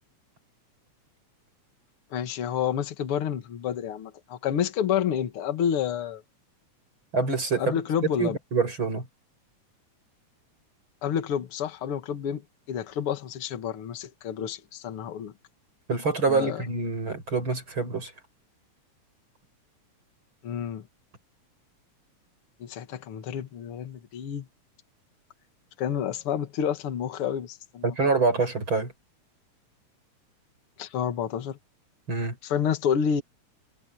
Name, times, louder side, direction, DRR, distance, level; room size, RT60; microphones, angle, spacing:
voice 1, 2.1-6.2 7.6-8.4 11.0-15.3 16.3-16.6 20.4-20.9 22.6-24.5 25.8-27.9 30.8-31.6 32.4-33.2, left 8 dB, 55° left, 2.3 m, -29 dB
voice 2, 7.1-9.1 15.9-18.1 27.8-28.9 32.1-32.4, right 4 dB, 40° right, 7.6 m, -26 dB
omnidirectional pair, 3.4 m